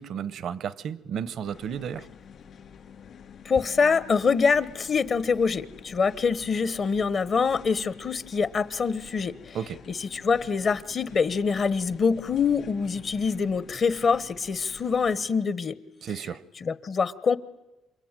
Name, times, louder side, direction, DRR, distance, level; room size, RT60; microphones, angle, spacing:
voice 1, 0.0-2.1 9.5-9.8 16.0-16.4, right 8 dB, 70° right, 0.9 m, -33 dB
sound 1, 1.4-15.3, left 7 dB, 65° left, 4.6 m, -49 dB
voice 2, 3.4-9.6 10.1-15.8 16.6-17.4, left 5 dB, 50° left, 1.2 m, -25 dB
28.0 x 23.5 x 9.1 m
cardioid pair, 90°, 0 cm